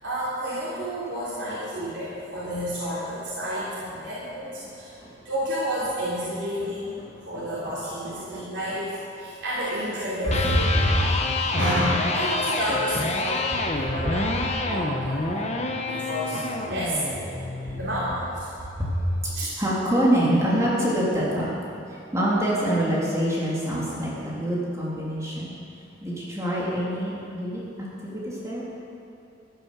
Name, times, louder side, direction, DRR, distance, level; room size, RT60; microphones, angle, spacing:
voice 1, 0.0-4.9 5.2-7.0 7.2-8.9 9.2-10.7 11.5-13.4 13.9-14.3 14.6-15.5 15.8-17.2 17.7-18.1 19.3-19.5, equal, 85° right, -10 dB, 3.3 m, -30 dB
voice 2, 8.0-8.4 10.7-11.0 18.5-19.0 19.3-21.5 22.1-25.5 26.0-27.6 28.0-28.6, equal, 15° right, -7 dB, 2.9 m, -25 dB
Electric guitar, 10.1-18.2, left 2 dB, 35° left, 1.1 m, -28 dB
12.5 x 11.0 x 6.8 m, 2.8 s
head